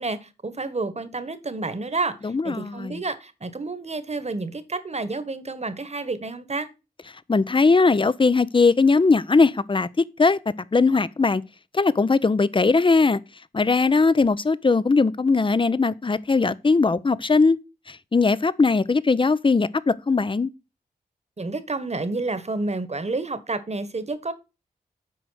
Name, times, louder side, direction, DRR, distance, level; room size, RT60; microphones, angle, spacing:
voice 1, 0.0-6.7 21.4-24.3, right 3 dB, 40° right, 1.4 m, -30 dB
voice 2, 2.2-3.0 7.3-10.4 10.7-11.4 11.7-13.2 13.5-17.6 17.9-20.5, left 4 dB, 30° left, 0.6 m, -20 dB
7.8 x 5.0 x 6.3 m
cardioid pair, 40°, 17 cm